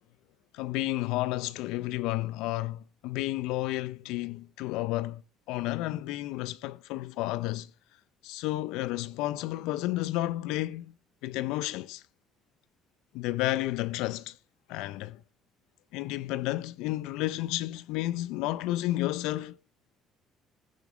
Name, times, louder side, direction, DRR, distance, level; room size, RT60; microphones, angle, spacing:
voice 1, 0.5-5.2 5.5-7.7 8.2-10.9 11.2-12.0 13.1-14.4 14.7-15.2 15.9-19.6, left 17 dB, 85° left, 0.6 m, -31 dB
15.5 x 7.0 x 4.9 m
cardioid pair, 110°, 0 cm